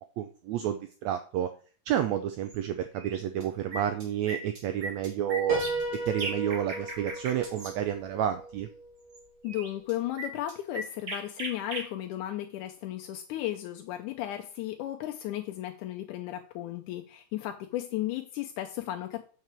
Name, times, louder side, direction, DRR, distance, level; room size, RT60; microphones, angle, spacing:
voice 1, 0.2-1.5 1.9-5.6 6.0-8.7, right 10 dB, 80° right, 8 dB, 1.6 m, -30 dB
sound 1, 2.5-2.6 3.0-3.4 3.7-7.7 9.1-9.2 9.5-11.9, right 2 dB, 35° right, 1.7 m, -38 dB
Piano, 5.5-9.2, right 2 dB, 20° right, 1.9 m, -35 dB
voice 2, 9.4-19.2, left 14 dB, 80° left, 5 dB, 2.0 m, -35 dB
8.0 x 5.7 x 4.5 m, 0.41 s
omnidirectional pair, 3.7 m